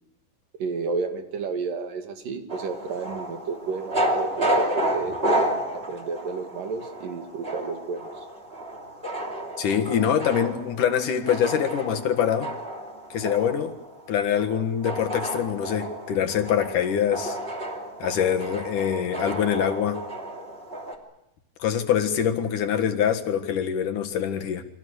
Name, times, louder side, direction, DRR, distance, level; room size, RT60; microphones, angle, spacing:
voice 1, 0.6-8.3, right 4 dB, 90° right, 5 dB, 4.1 m, -32 dB
sound 1, 2.5-20.9, right 1 dB, 20° right, 2.9 m, -31 dB
voice 2, 9.6-12.5 13.1-13.7 14.1-17.4 18.0-20.0 21.6-24.6, left 8 dB, 75° left, 5 dB, 3.3 m, -24 dB
29.0 x 25.0 x 6.5 m, 0.84 s
omnidirectional pair, 3.7 m